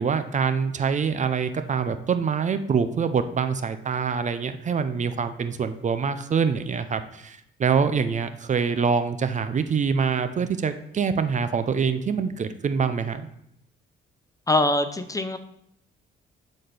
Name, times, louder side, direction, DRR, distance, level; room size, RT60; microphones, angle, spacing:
voice 1, 0.0-13.3, right 6 dB, 40° right, 10 dB, 0.5 m, -25 dB
voice 2, 14.5-15.4, left 2 dB, 15° left, 10 dB, 0.5 m, -23 dB
11.5 x 4.2 x 3.3 m, 0.75 s
cardioid pair, 90°, 20 cm